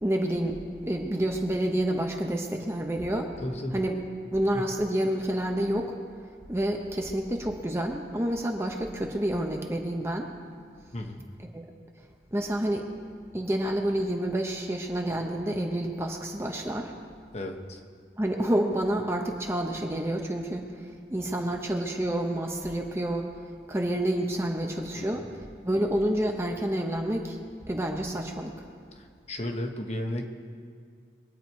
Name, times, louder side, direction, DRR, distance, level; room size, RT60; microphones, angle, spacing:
voice 1, 0.0-3.3 3.7-4.0 4.3-5.9 6.5-10.3 11.5-11.6 12.3-12.9 13.3-16.9 18.2-23.3 23.7-25.2 25.6-27.4 27.7-28.6, right 1 dB, 15° right, 2 dB, 0.9 m, -28 dB
voice 2, 3.4-3.8 4.5-4.6 10.9-11.3 17.3-17.8 24.9-25.2 28.9-30.3, left 1 dB, 40° left, 3 dB, 1.1 m, -34 dB
23.0 x 8.9 x 4.6 m, 2.2 s
head